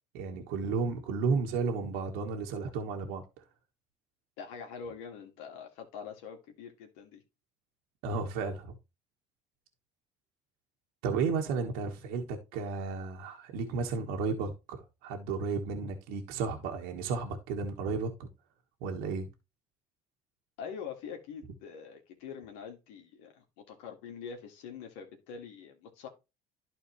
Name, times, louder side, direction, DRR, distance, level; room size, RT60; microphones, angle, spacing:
voice 1, 0.1-3.4 8.0-8.8 11.0-18.3 18.8-19.3, right 4 dB, 80° right, 1.5 m, -33 dB
voice 2, 4.4-7.2 20.6-26.1, left 6 dB, 85° left, 2.1 m, -44 dB
11.5 x 4.3 x 3.1 m
supercardioid pair, 85°, 15 cm